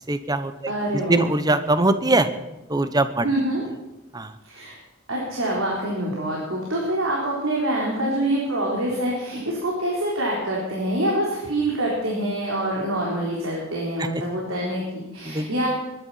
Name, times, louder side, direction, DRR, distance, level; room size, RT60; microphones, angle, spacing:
voice 1, 0.0-2.3 2.7-3.3 4.1-4.4 14.0-14.2 15.2-15.5, right 2 dB, 20° right, 11 dB, 0.9 m, -22 dB
voice 2, 0.7-1.2 3.2-3.6 4.5-4.7 5.1-15.7, right 1 dB, 90° right, -4 dB, 4.0 m, -25 dB
22.0 x 11.0 x 5.7 m, 1.0 s
head